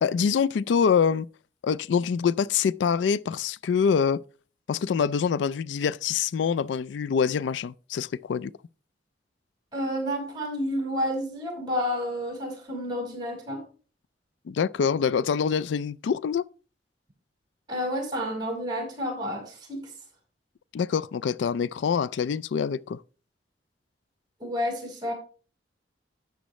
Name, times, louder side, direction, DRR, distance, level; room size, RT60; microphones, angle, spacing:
voice 1, 0.0-1.3 1.6-4.2 4.7-8.5 14.5-16.4 20.7-23.0, left 6 dB, 85° left, 0.3 m, -25 dB
voice 2, 9.7-13.6 17.7-19.9 24.4-25.1, equal, 25° right, 5.0 m, -30 dB
12.5 x 8.2 x 3.1 m
head